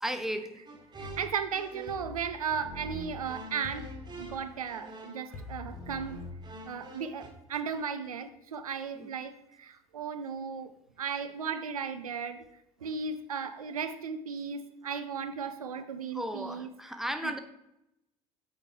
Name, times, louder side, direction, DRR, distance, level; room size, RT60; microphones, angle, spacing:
voice 1, 0.0-0.6 4.7-5.0 5.3-5.5 8.9-9.1 16.1-17.4, equal, ahead, 8 dB, 0.6 m, -35 dB
sound 1, 0.7-2.2 2.5-7.3, right 1 dB, 20° right, 1.5 m, -45 dB
voice 2, 0.9-3.9 4.2-6.2 6.6-10.7 11.0-12.4 12.8-16.7 17.2-17.4, right 6 dB, 80° right, 10 dB, 0.5 m, -36 dB
sound 2, 1.9-3.0 3.6-4.7 5.3-6.4, left 5 dB, 50° left, 1.0 m, -46 dB
8.3 x 4.8 x 3.3 m, 0.87 s
figure-of-eight pair, 60°, 18 cm